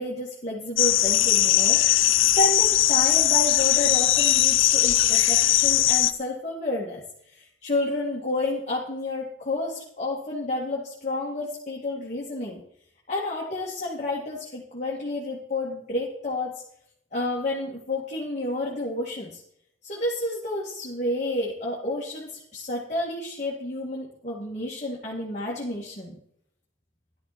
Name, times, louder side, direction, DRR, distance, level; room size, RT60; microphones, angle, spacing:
voice 1, 0.0-2.1 2.4-12.6 13.1-16.6 17.1-19.4 19.8-26.2, left 2 dB, 35° left, -4 dB, 2.3 m, -30 dB
sound 1, 0.8-6.1, left 13 dB, 85° left, 0.8 m, -20 dB
14.5 x 12.0 x 4.3 m, 0.70 s
head